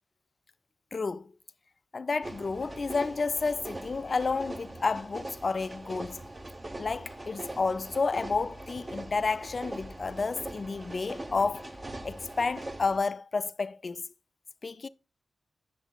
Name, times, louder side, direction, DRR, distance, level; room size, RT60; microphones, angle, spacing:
voice 1, 0.9-1.3 1.9-6.2 6.8-11.7 12.0-14.1 14.6-14.9, left 4 dB, 45° left, 0.3 m, -31 dB
sound 1, 2.2-13.0, right 1 dB, 25° right, 0.7 m, -42 dB
8.0 x 6.6 x 2.3 m
wide cardioid pair, 85°, 0 cm